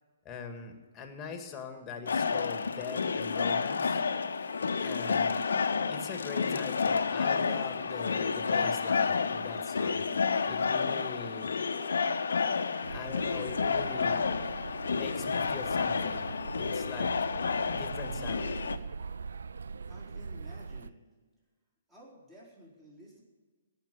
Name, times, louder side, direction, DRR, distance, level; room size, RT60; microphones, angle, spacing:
voice 1, 0.2-4.0 4.8-5.4 5.9-10.0 10.5-11.5 12.9-14.3 14.8-16.3 16.6-17.1 17.7-18.5, left 5 dB, 20° left, 5 dB, 1.9 m, -42 dB
sound 1, 2.1-18.8, left 5 dB, 70° left, 0.8 m, -30 dB
sound 2, 12.8-20.9, right 5 dB, 70° right, 0.4 m, -41 dB
voice 2, 19.9-21.0 21.9-23.2, equal, 10° right, -5 dB, 4.2 m, -53 dB
17.5 x 5.9 x 9.2 m, 1.4 s
figure-of-eight pair, 125°, 0 cm